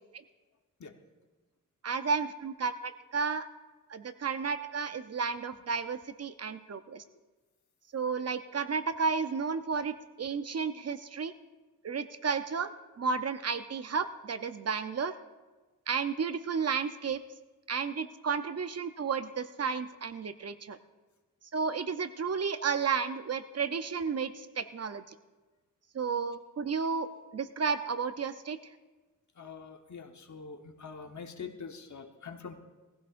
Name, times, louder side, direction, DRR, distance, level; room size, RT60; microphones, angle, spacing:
voice 1, 1.8-3.5 3.9-7.0 7.9-11.3 11.8-12.7 13.0-15.1 15.9-17.2 17.7-20.8 21.5-25.0 25.9-27.1 27.3-28.6, right 5 dB, 50° right, 10 dB, 0.6 m, -32 dB
voice 2, 29.4-32.5, left 5 dB, 60° left, 5 dB, 1.1 m, -44 dB
20.5 x 15.5 x 2.5 m, 1.2 s
wide cardioid pair, 95°, 33 cm